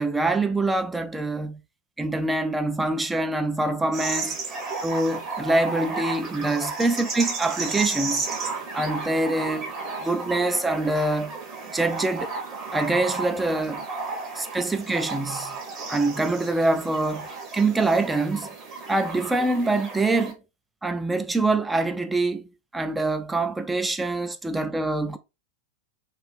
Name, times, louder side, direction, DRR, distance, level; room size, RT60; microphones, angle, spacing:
voice 1, 0.0-1.6 2.0-4.4 4.8-8.3 8.7-9.7 10.0-11.4 11.7-12.3 12.7-13.8 14.4-15.5 15.9-18.5 18.9-20.4 20.8-22.4 22.7-25.2, right 2 dB, 10° right, 0.3 m, -25 dB
sound 1, 3.9-20.3, right 4 dB, 30° right, 1.1 m, -33 dB
3.1 x 2.7 x 3.4 m
figure-of-eight pair, 90°, 0 cm